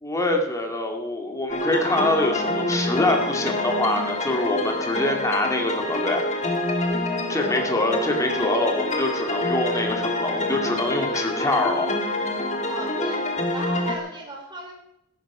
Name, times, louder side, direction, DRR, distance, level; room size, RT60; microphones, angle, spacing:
voice 1, 0.0-6.3 7.3-12.0, left 1 dB, 15° left, 2 dB, 2.3 m, -25 dB
sound 1, 1.5-14.0, left 2 dB, 35° left, 2.1 m, -26 dB
voice 2, 7.1-7.5 12.6-13.2 13.5-14.7, right 2 dB, 20° right, -1 dB, 4.1 m, -36 dB
15.5 x 12.0 x 5.0 m, 0.80 s
head